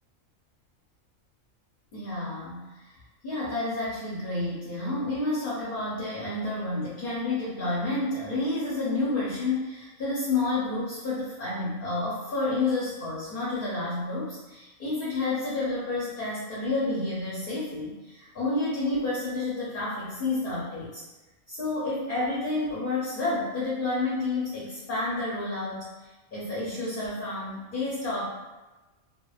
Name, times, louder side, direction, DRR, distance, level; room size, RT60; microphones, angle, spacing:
voice 1, 1.9-3.0 3.2-21.0 21.5-28.2, left 2 dB, 50° left, -8 dB, 0.6 m, -30 dB
2.7 x 2.1 x 2.2 m, 1.1 s
omnidirectional pair, 1.5 m